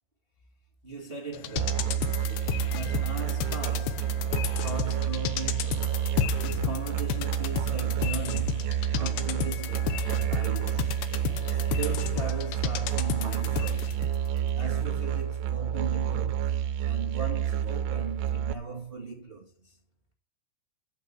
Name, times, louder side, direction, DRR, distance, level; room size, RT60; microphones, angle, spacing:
voice 1, 0.8-2.2 2.7-4.3 4.6-6.0 6.4-14.0 14.5-19.8, right 4 dB, 60° right, 0.5 m, -39 dB
sound 1, 1.3-14.2 14.5-14.6, left 13 dB, 90° left, 3.1 m, -34 dB
Musical instrument, 1.6-18.5, right 10 dB, 80° right, 2.9 m, -29 dB
11.5 x 7.4 x 8.0 m
omnidirectional pair, 4.9 m